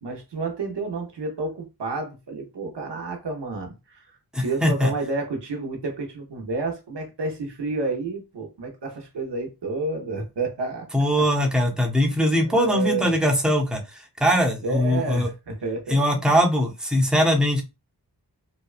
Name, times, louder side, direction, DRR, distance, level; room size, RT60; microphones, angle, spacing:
voice 1, 0.0-11.2 12.4-13.1 14.6-16.0, right 3 dB, 85° right, 0.8 m, -30 dB
voice 2, 4.3-4.9 10.9-13.8 14.2-15.3 15.9-17.6, equal, ahead, 0.7 m, -21 dB
2.8 x 2.2 x 2.4 m
wide cardioid pair, 50°, 41 cm